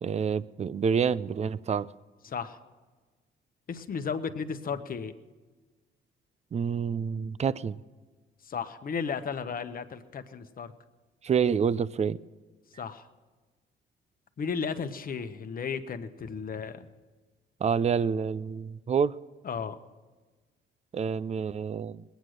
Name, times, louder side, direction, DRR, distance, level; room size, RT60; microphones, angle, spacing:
voice 1, 0.0-1.9 6.5-7.8 11.2-12.2 17.6-19.2 20.9-22.0, right 6 dB, 35° right, 18 dB, 0.5 m, -28 dB
voice 2, 2.2-2.6 3.7-5.1 8.4-10.7 12.8-13.1 14.4-16.9 19.4-19.8, left 6 dB, 45° left, 9 dB, 1.0 m, -34 dB
20.0 x 9.3 x 6.5 m, 1.3 s
cardioid pair, 90°, 20 cm